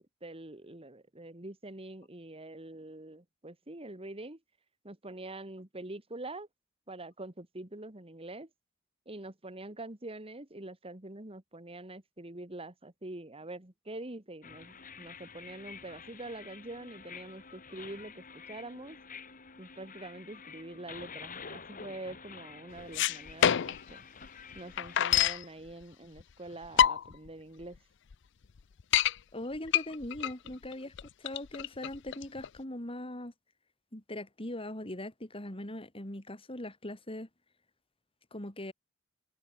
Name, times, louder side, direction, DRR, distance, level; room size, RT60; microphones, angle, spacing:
voice 1, 0.2-4.4 4.8-6.5 6.9-8.5 9.1-19.0 19.6-24.0 24.6-27.8 30.4-30.5, right 2 dB, 30° right, 2.2 m, -45 dB
sound 1, 14.4-25.3, left 5 dB, 45° left, 4.1 m, -49 dB
sound 2, 22.8-23.9 24.3-24.4 24.5-25.4 26.2-26.3 26.6-27.3 27.8-27.9 28.1-28.2 28.6-29.1 29.7-32.6, left 10 dB, 65° left, 0.5 m, -26 dB
voice 2, 29.3-33.3 33.9-37.3 38.3-38.7, left 1 dB, 30° left, 3.3 m, -40 dB
head